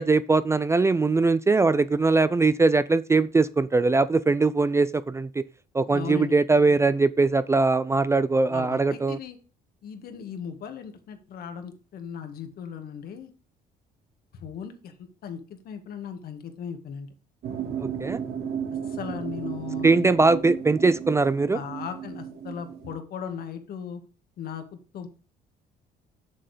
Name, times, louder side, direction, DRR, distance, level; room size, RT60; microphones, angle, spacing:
voice 1, 0.0-5.4 5.7-9.2 17.8-18.2 19.8-21.6, right 3 dB, 15° right, 16 dB, 0.4 m, -21 dB
voice 2, 5.8-6.4 8.5-9.4 9.8-13.3 14.3-15.0 15.2-17.1 18.9-20.1 21.5-24.0 24.4-24.6 24.9-25.1, left 7 dB, 65° left, 7 dB, 1.9 m, -37 dB
sound 1, 17.4-23.0, right 8 dB, 70° right, 2.2 m, -34 dB
7.4 x 6.7 x 5.0 m, 0.36 s
cardioid pair, 110°, 17 cm